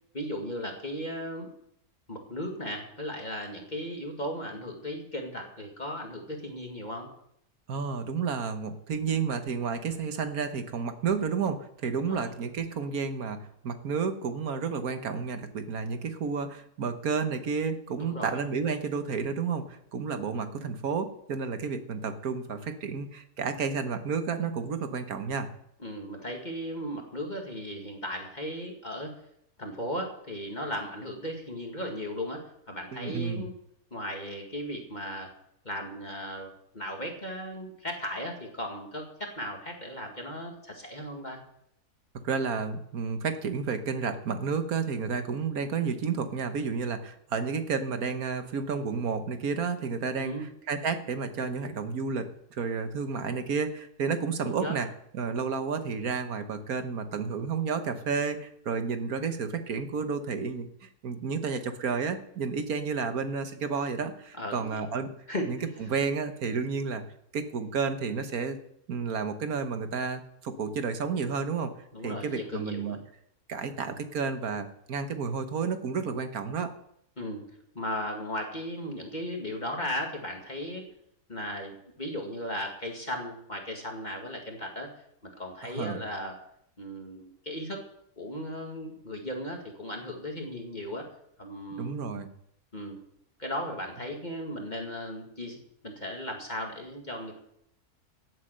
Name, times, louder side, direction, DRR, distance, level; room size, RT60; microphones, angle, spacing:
voice 1, 0.1-1.5 2.1-7.1 12.1-12.3 18.0-18.4 25.8-29.2 29.6-33.5 33.9-35.3 35.6-41.4 50.2-50.5 54.4-54.8 64.4-64.8 65.3-65.7 71.9-73.0 77.2-77.4 77.7-80.8 81.3-84.9 85.2-86.4 86.8-87.8 88.2-91.0 91.4-92.1 92.7-93.0 93.4-95.6 95.8-97.4, equal, 30° left, 1 dB, 2.2 m, -36 dB
voice 2, 7.7-25.5 32.9-33.5 42.2-54.9 55.1-65.1 65.5-67.0 67.3-68.6 68.9-71.7 72.0-73.0 73.5-76.7 85.6-86.0 91.8-92.3, right 5 dB, 70° right, 8 dB, 1.7 m, -31 dB
17.0 x 7.8 x 6.6 m, 0.74 s
omnidirectional pair, 1.7 m